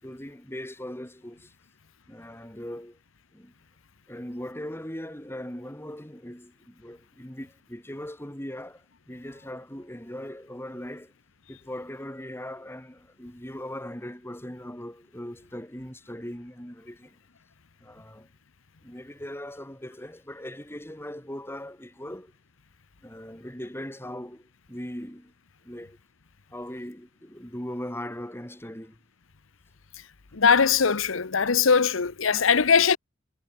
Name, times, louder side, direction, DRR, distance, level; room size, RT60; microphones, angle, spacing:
voice 1, 0.0-1.5 2.1-3.0 3.3-3.5 4.1-11.1 11.5-17.2 17.8-18.3 18.8-22.3 23.0-25.3 25.6-26.0 26.5-29.0, left 1 dB, 10° left, 5.3 m, -39 dB
voice 2, 30.3-33.0, left 6 dB, 90° left, 1.0 m, -21 dB
head